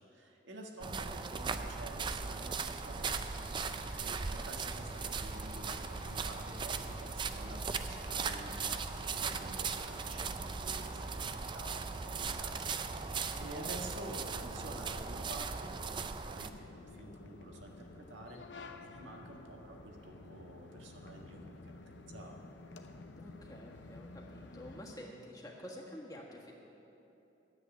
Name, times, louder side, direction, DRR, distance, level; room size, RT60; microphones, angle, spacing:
voice 1, 0.0-15.8 16.1-22.4, right 1 dB, 90° right, 1 dB, 1.6 m, -50 dB
sound 1, 0.8-16.5, right 5 dB, 25° right, 0.4 m, -38 dB
sound 2, 3.3-14.4, left 2 dB, 40° left, 0.7 m, -55 dB
sound 3, 16.4-24.8, left 2 dB, 75° left, 0.7 m, -51 dB
voice 2, 23.2-26.5, equal, 20° left, -2 dB, 1.5 m, -49 dB
9.6 x 8.1 x 9.2 m, 3.0 s
head